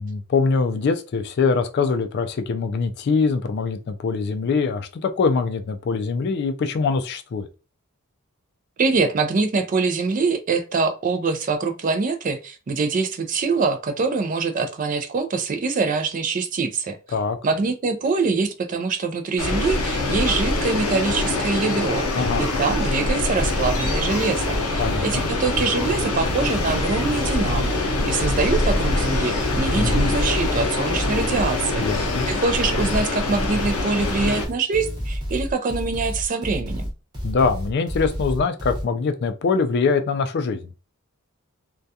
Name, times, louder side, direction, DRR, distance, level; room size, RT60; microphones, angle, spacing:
voice 1, 0.0-7.5 17.1-17.4 22.2-22.5 24.8-25.3 29.7-30.1 31.8-32.3 37.2-40.6, left 4 dB, 50° left, 0.3 m, -23 dB
voice 2, 8.8-17.0 17.4-27.8 28.1-36.8, right 4 dB, 35° right, 0.3 m, -24 dB
sound 1, 19.4-34.5, left 2 dB, 85° left, 0.6 m, -24 dB
sound 2, 23.3-38.8, equal, 20° right, 0.9 m, -31 dB
2.2 x 2.2 x 2.7 m
head